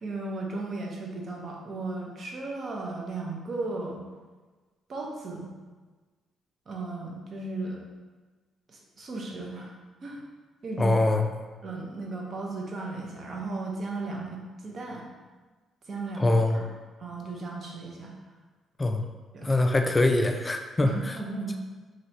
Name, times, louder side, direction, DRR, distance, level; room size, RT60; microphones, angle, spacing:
voice 1, 0.0-4.0 4.9-5.5 6.7-7.8 8.7-9.7 10.0-10.2 10.6-11.0 11.6-15.1 15.9-16.7 17.0-18.1 19.3-19.6 20.8-21.6, right 3 dB, 50° right, -1 dB, 0.6 m, -35 dB
voice 2, 10.8-11.3 16.2-16.6 18.8-19.0 19.4-21.1, left 2 dB, 20° left, 5 dB, 0.3 m, -23 dB
3.1 x 2.8 x 2.7 m, 1.3 s
cardioid pair, 90°, 0 cm